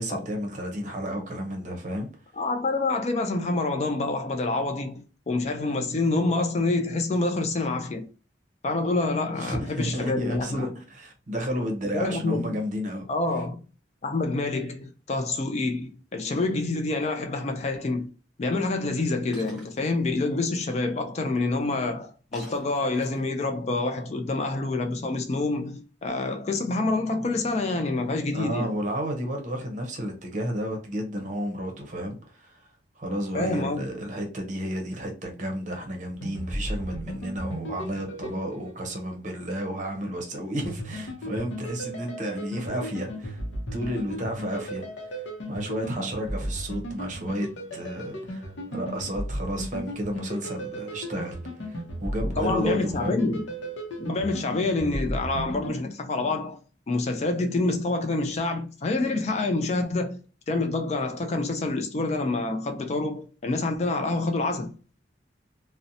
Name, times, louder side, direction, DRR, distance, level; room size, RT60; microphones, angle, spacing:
voice 1, 0.0-2.1 9.4-13.1 28.3-32.6 33.0-43.4 43.7-44.9 45.1-53.2, equal, 40° right, 0.7 m, -32 dB
voice 2, 2.3-8.1 8.6-10.8 11.9-12.6 13.1-13.6 14.0-18.1 18.4-28.7 33.3-33.9 52.3-53.5 54.0-56.6 56.9-60.2 60.5-64.7, left 2 dB, 35° left, 0.3 m, -27 dB
Shatter, 19.3-19.9 22.3-23.4, right 1 dB, ahead, 0.9 m, -48 dB
sound 1, 36.1-39.1 40.6-55.7, equal, 80° left, 0.6 m, -35 dB
2.6 x 2.1 x 2.6 m
head